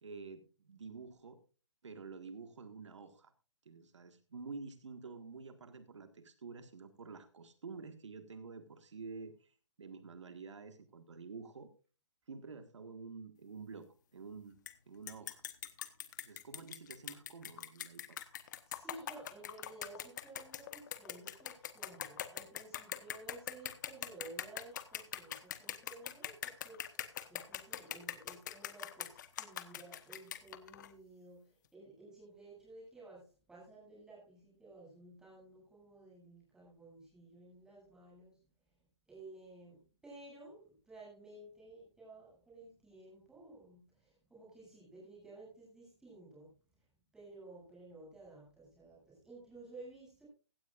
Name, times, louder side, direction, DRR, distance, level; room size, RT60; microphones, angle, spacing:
voice 1, 0.0-1.4 1.8-3.3 3.7-11.7 12.3-14.6 14.9-15.4 16.2-18.2, right 4 dB, 80° right, 8 dB, 1.7 m, -49 dB
sound 1, 14.7-14.8 15.1-30.9, left 10 dB, 40° left, 1.1 m, -42 dB
voice 2, 18.4-38.4 39.1-46.6 47.1-50.3, right 2 dB, 5° right, -5 dB, 8.0 m, -54 dB
16.0 x 15.0 x 2.5 m, 0.35 s
hypercardioid pair, 155°, 15 cm